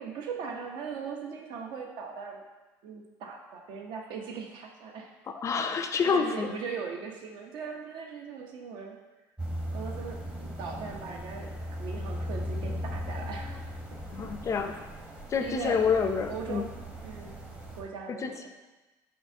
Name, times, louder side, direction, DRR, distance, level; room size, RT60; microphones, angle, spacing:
voice 1, 0.0-2.4 2.8-5.1 5.7-5.8 6.0-9.0 9.7-13.6 13.9-14.3 15.4-16.0 16.2-16.7 17.0-17.4 17.7-18.5, right 5 dB, 65° right, 2 dB, 0.6 m, -39 dB
voice 2, 5.3-6.5 14.1-14.8 15.3-16.7 18.1-18.4, left 6 dB, 35° left, 7 dB, 0.4 m, -28 dB
sound 1, 9.4-17.8, equal, 10° right, 0.7 m, -38 dB
5.6 x 2.6 x 2.6 m, 1.2 s
supercardioid pair, 90°, 9 cm